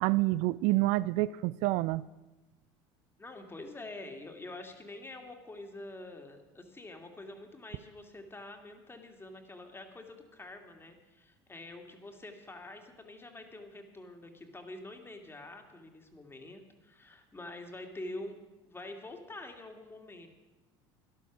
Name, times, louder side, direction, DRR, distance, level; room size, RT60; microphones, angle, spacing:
voice 1, 0.0-2.0, right 19 dB, 65° right, 17 dB, 0.4 m, -28 dB
voice 2, 3.2-18.4 18.6-20.3, left 2 dB, 15° left, 5 dB, 2.2 m, -46 dB
13.0 x 11.0 x 6.1 m, 1.1 s
hypercardioid pair, 85°, 13 cm